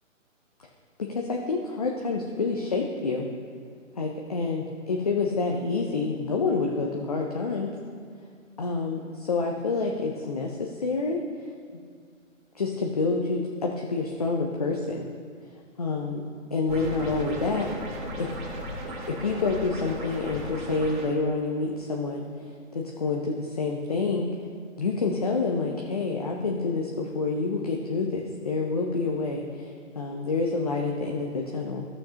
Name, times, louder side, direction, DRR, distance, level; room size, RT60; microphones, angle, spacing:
voice 1, 1.0-3.2 4.0-7.7 8.6-11.2 12.6-15.1 15.8-16.2 16.5-17.7 18.2-18.3 19.1-22.3 22.7-24.3 24.8-31.9, left 3 dB, 30° left, 0 dB, 0.4 m, -28 dB
sound 1, 16.7-21.1, equal, 40° right, 1.9 m, -36 dB
14.0 x 6.4 x 2.8 m, 2.1 s
hypercardioid pair, 150°, 40 cm